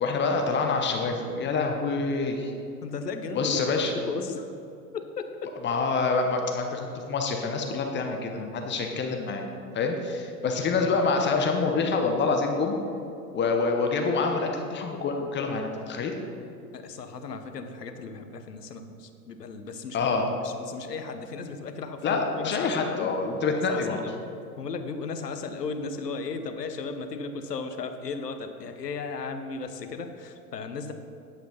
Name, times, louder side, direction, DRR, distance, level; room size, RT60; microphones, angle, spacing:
voice 1, 0.0-2.5 3.3-3.9 5.6-9.4 9.7-12.8 13.3-16.1 19.9-20.3 22.0-24.0, left 4 dB, 25° left, 3 dB, 1.0 m, -26 dB
voice 2, 2.8-4.5 4.9-5.5 10.4-10.6 16.7-20.1 20.4-23.1 23.5-24.2 24.6-30.9, left 4 dB, 85° left, 7 dB, 1.0 m, -36 dB
10.0 x 5.8 x 5.6 m, 2.6 s
figure-of-eight pair, 95°, 47 cm